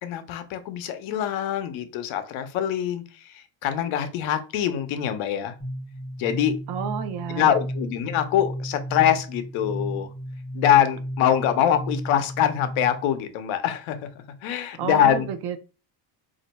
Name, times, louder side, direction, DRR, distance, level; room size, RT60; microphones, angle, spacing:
voice 1, 0.0-3.0 3.6-5.6 6.2-6.6 7.3-10.1 10.5-14.0 14.4-15.3, left 10 dB, 75° left, 9 dB, 0.7 m, -24 dB
sound 1, 5.6-13.2, equal, 10° left, 0.5 m, -34 dB
voice 2, 6.7-7.5 14.8-15.6, right 8 dB, 55° right, 10 dB, 0.5 m, -30 dB
2.6 x 2.1 x 4.0 m, 0.33 s
cardioid pair, 110°, 49 cm